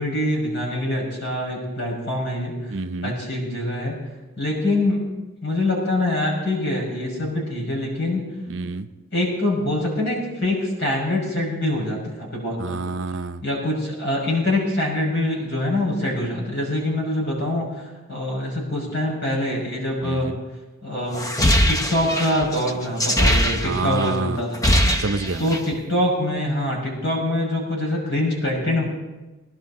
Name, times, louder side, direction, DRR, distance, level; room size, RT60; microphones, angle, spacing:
voice 1, 0.0-2.5 3.0-4.0 4.4-5.1 5.4-8.3 9.1-12.8 13.4-17.7 18.1-20.3 20.8-21.3 21.7-24.6 25.4-28.8, left 1 dB, 55° left, -2 dB, 6.3 m, -24 dB
voice 2, 2.7-3.2 8.5-8.9 12.6-13.4 20.0-20.4 23.6-24.4 25.0-25.5, right 3 dB, 65° right, 9 dB, 0.7 m, -28 dB
sound 1, 21.1-24.1 24.4-25.7, equal, 15° left, 0.6 m, -21 dB
21.0 x 11.5 x 4.2 m, 1.1 s
head